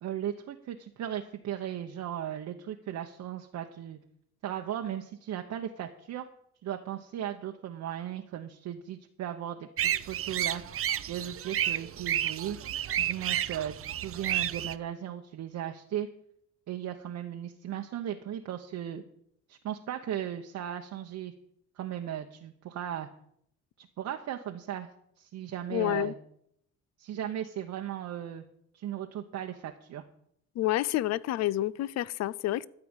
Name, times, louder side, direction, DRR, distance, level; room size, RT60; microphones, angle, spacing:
voice 1, 0.0-4.0 4.4-6.3 6.6-9.7 10.0-10.6 11.1-12.6 13.0-16.1 16.7-19.0 19.5-21.3 21.8-23.1 23.8-24.9 25.2-26.1 27.0-28.4 28.7-30.0, right 10 dB, 65° right, 3 dB, 0.9 m, -36 dB
sound 1, 9.8-14.7, right 11 dB, 45° right, 0.5 m, -31 dB
voice 2, 25.7-26.1 30.6-32.7, left 15 dB, 60° left, 22 dB, 0.4 m, -29 dB
13.5 x 4.9 x 8.8 m, 0.72 s
cardioid pair, 90°, 30 cm